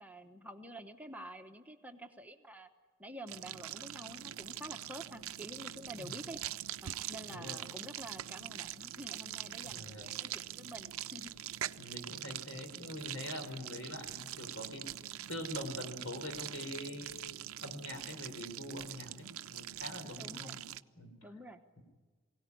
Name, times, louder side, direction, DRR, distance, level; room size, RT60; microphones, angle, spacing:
voice 1, 0.0-2.7 3.0-6.4 6.8-11.3 20.0-20.6 21.2-21.6, right 1 dB, 5° right, 4 dB, 1.0 m, -49 dB
sound 1, 3.3-20.8, right 12 dB, 85° right, 0.6 m, -44 dB
voice 2, 7.3-7.6 9.6-10.1 11.8-14.8 15.3-20.6 21.0-21.1, left 1 dB, 75° left, 5 dB, 4.7 m, -44 dB
22.5 x 17.5 x 9.9 m, 1.4 s
head